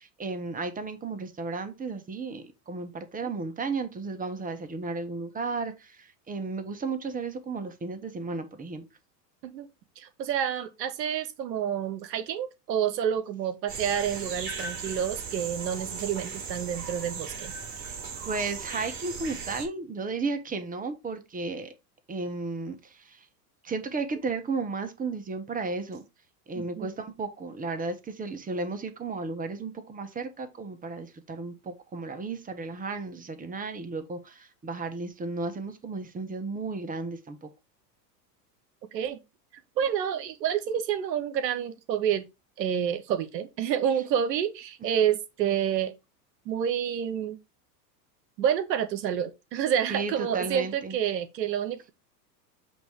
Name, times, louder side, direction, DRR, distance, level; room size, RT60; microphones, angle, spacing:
voice 1, 0.0-8.8 17.8-18.0 18.2-21.7 22.1-23.2 23.6-26.0 26.5-37.5 49.9-51.0, right 3 dB, 15° right, 1.3 m, -34 dB
voice 2, 10.0-17.5 26.6-26.9 38.9-39.2 39.8-42.3 42.6-45.9 46.4-47.4 48.4-51.9, right 9 dB, 80° right, 1.1 m, -28 dB
sound 1, 13.7-19.6, right 5 dB, 35° right, 4.5 m, -37 dB
7.9 x 3.0 x 5.0 m
hypercardioid pair, 95°, 49 cm